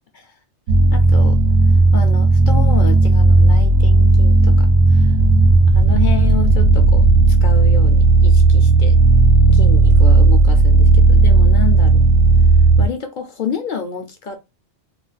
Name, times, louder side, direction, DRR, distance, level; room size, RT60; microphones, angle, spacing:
sound 1, 0.7-12.9, right 3 dB, 75° right, 0.9 m, -12 dB
voice 1, 0.9-1.4 1.7-5.2 5.7-8.9 9.5-12.0 12.8-14.4, left 7 dB, 60° left, 6 dB, 0.5 m, -29 dB
2.4 x 2.2 x 3.9 m, 0.24 s
omnidirectional pair, 1.3 m